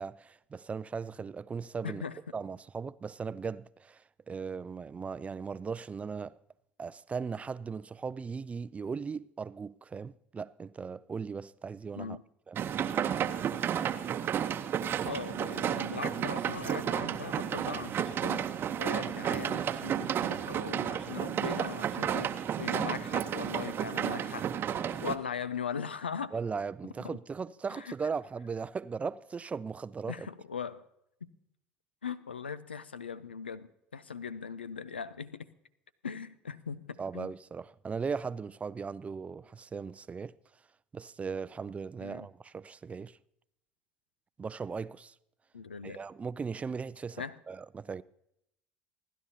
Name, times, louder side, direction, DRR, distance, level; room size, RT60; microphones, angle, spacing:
voice 1, 0.0-2.0 2.3-6.4 6.8-12.2 12.5-12.6 26.3-30.3 37.0-40.3 40.9-43.2 44.4-45.1 45.8-48.0, right 5 dB, 25° right, 0.4 m, -38 dB
voice 2, 1.8-2.2 12.0-12.2 15.0-24.5 25.0-26.4 27.0-27.2 27.7-27.9 30.1-30.8 31.2-31.3 32.0-35.5 36.0-37.3 42.0-42.3 45.5-46.0 47.2-47.4, left 6 dB, 90° left, 0.4 m, -39 dB
sound 1, 12.6-25.2, right 9 dB, 40° right, 0.8 m, -32 dB
28.0 x 11.0 x 2.8 m
hypercardioid pair, 65°, 5 cm